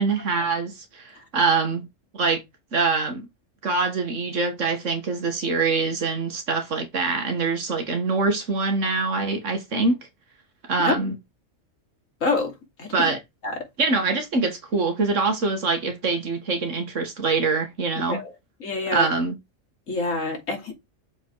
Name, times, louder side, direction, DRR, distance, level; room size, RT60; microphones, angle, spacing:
voice 1, 0.0-1.9 2.1-2.4 2.7-3.3 3.6-10.0 10.7-11.2 12.9-13.2 13.8-18.2 18.9-19.4, right 4 dB, 75° right, 1.8 m, -24 dB
voice 2, 12.2-12.5 12.8-13.1 13.4-13.5 18.1-18.3 18.6-19.1 19.9-20.7, left 3 dB, 90° left, 3.1 m, -26 dB
6.8 x 5.0 x 4.6 m
omnidirectional pair, 1.3 m